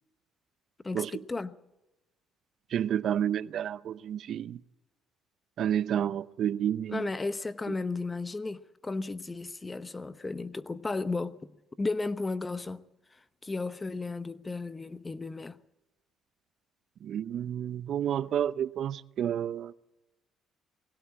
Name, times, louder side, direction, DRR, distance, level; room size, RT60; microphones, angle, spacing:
voice 1, 0.8-1.6 6.9-11.4 11.8-12.8 13.4-15.6, left 3 dB, 20° left, 1.0 m, -34 dB
voice 2, 2.7-4.6 5.6-7.1 17.0-19.7, right 10 dB, 60° right, 0.7 m, -30 dB
20.5 x 17.0 x 8.6 m
cardioid pair, 90°, 0 cm